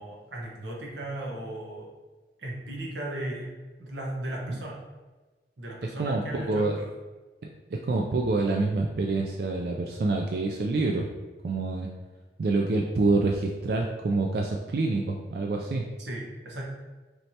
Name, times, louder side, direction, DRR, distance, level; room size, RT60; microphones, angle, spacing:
voice 1, 0.0-1.9 2.4-3.5 3.8-4.8 5.6-6.9 16.0-16.6, right 1 dB, 90° right, -2 dB, 1.0 m, -36 dB
voice 2, 6.0-6.8 7.7-11.1 11.4-11.9 12.4-15.8, right 3 dB, 60° right, 1 dB, 0.3 m, -27 dB
4.4 x 3.2 x 2.7 m, 1.3 s
head